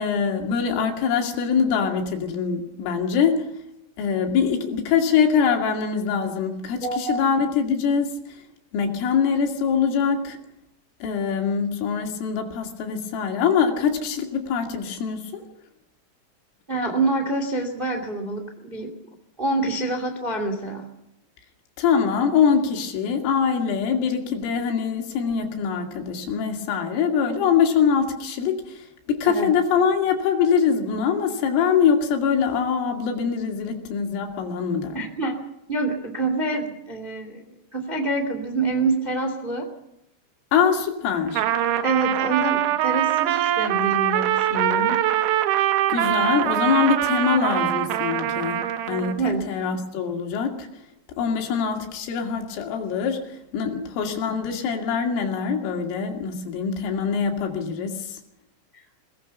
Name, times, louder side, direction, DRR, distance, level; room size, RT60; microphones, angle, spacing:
voice 1, 0.0-3.5 4.0-8.2 8.7-10.4 11.0-15.4 21.8-35.0 40.5-41.4 45.9-50.7 51.2-58.2, left 6 dB, 75° left, 3 dB, 4.9 m, -23 dB
voice 2, 6.8-7.2 16.7-18.9 19.4-20.8 29.3-29.5 34.9-35.4 35.7-37.4 37.7-39.7 41.8-45.0 49.2-49.5, right 2 dB, 30° right, 4 dB, 1.0 m, -26 dB
Trumpet, 41.3-49.2, right 12 dB, 75° right, 3.1 m, -23 dB
22.0 x 19.5 x 7.0 m, 0.85 s
omnidirectional pair, 5.9 m